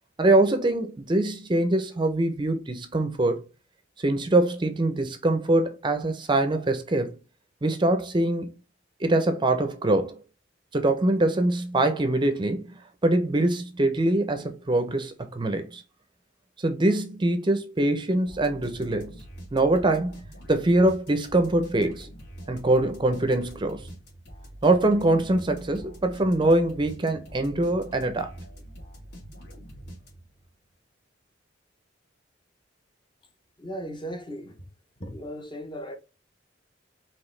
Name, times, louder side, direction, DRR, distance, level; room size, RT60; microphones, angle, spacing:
voice 1, 0.2-3.4 4.0-7.1 7.6-8.5 9.0-10.2 10.7-12.7 13.0-15.8 16.6-19.1 19.5-20.1 20.5-22.1 22.5-23.9 24.6-28.3, right 2 dB, 25° right, 0.6 m, -23 dB
sound 1, 18.3-30.5, equal, 60° left, 2.5 m, -45 dB
voice 2, 33.6-34.6 35.0-36.0, equal, 25° left, 0.8 m, -36 dB
4.8 x 3.0 x 3.2 m
head